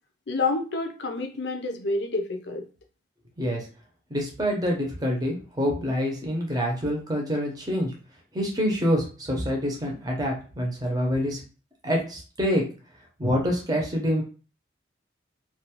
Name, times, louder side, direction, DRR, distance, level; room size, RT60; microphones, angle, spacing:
voice 1, 0.3-2.6, left 3 dB, 65° left, 5 dB, 0.5 m, -28 dB
voice 2, 4.1-7.9 8.3-11.4 11.8-12.6 13.2-14.2, equal, 20° right, 0 dB, 0.7 m, -26 dB
2.5 x 2.3 x 2.9 m, 0.36 s
head